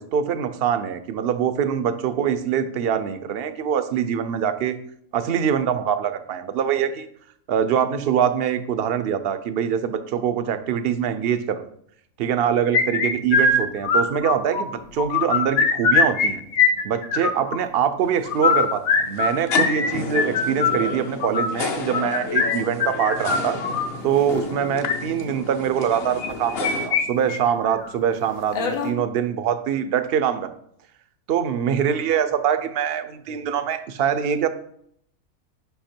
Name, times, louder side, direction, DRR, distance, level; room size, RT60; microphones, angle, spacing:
voice 1, 0.0-4.8 5.1-7.1 7.5-11.6 12.2-16.4 16.8-23.6 24.0-30.5 31.3-34.5, right 8 dB, 70° right, 11 dB, 0.5 m, -24 dB
sound 1, 12.7-14.6 15.0-16.3 16.5-17.6 18.2-23.9 24.6-24.9 26.2-27.0 27.3-27.4 27.8-27.9 28.5-28.9, left 4 dB, 80° left, 1.3 m, -21 dB
sound 2, 18.0-26.9, left 4 dB, 55° left, 0.8 m, -32 dB
5.6 x 5.2 x 4.3 m, 0.67 s
omnidirectional pair, 1.5 m